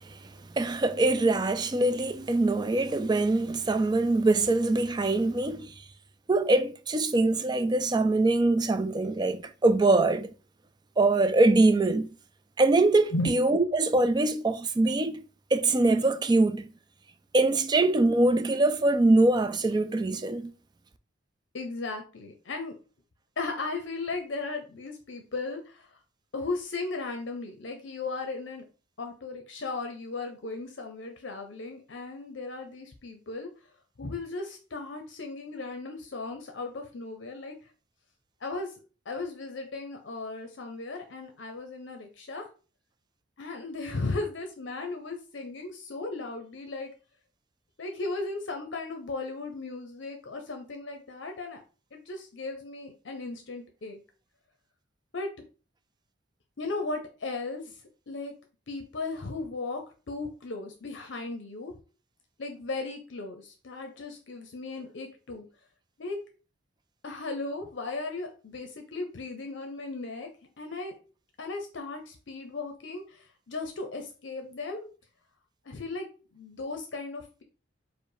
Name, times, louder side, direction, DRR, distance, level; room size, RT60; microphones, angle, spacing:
voice 1, 0.6-5.7 6.3-10.3 11.0-12.1 12.6-15.2 15.5-16.7 17.3-20.5, right 2 dB, 20° right, 0.3 m, -23 dB
voice 2, 21.5-22.7 23.4-26.0 26.3-28.6 29.0-33.5 34.0-37.5 38.4-38.7 39.1-42.5 43.4-46.9 47.8-51.6 51.9-54.0 55.1-55.3 56.6-57.8 58.1-58.3 58.7-59.8 60.1-61.7 62.4-65.5 66.0-66.2 67.0-70.3 70.6-70.9 71.4-74.9 75.6-76.1 76.3-77.4, left 3 dB, 65° left, 0.7 m, -36 dB
4.8 x 2.1 x 4.8 m
head